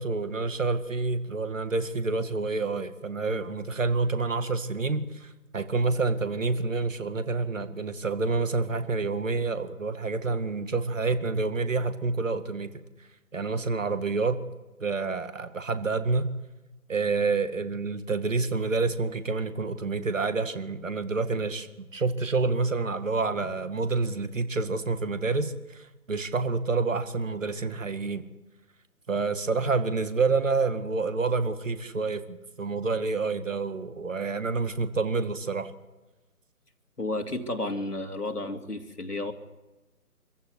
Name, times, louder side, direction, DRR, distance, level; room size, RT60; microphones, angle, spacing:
voice 1, 0.0-12.8 13.3-14.4 14.8-16.3 16.9-28.2 29.1-35.7, right 3 dB, 55° right, 10 dB, 2.1 m, -28 dB
voice 2, 37.0-39.3, left 2 dB, 90° left, 4 dB, 2.7 m, -32 dB
25.0 x 15.0 x 9.5 m, 1.1 s
figure-of-eight pair, 150°, 45 cm